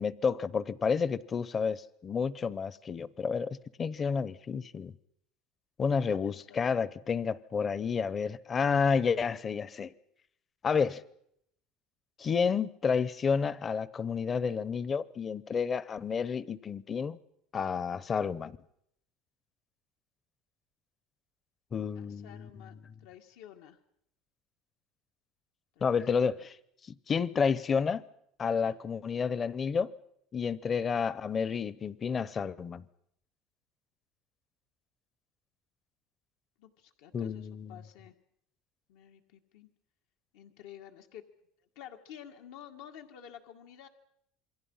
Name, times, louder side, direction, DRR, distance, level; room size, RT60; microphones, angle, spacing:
voice 1, 0.0-4.9 5.8-9.9 10.6-11.0 12.2-17.2 17.5-18.6 21.7-22.5 25.8-26.6 27.1-28.0 28.4-29.9 30.3-32.8 37.1-37.8, left 6 dB, 25° left, 0.8 m, -30 dB
voice 2, 6.1-6.7 22.0-23.8 25.8-25.9 26.2-26.5 28.4-28.8 36.6-38.1 38.9-39.7 40.3-41.2 41.8-43.9, left 10 dB, 80° left, 2.0 m, -51 dB
27.5 x 22.5 x 5.7 m
cardioid pair, 135°, 0 cm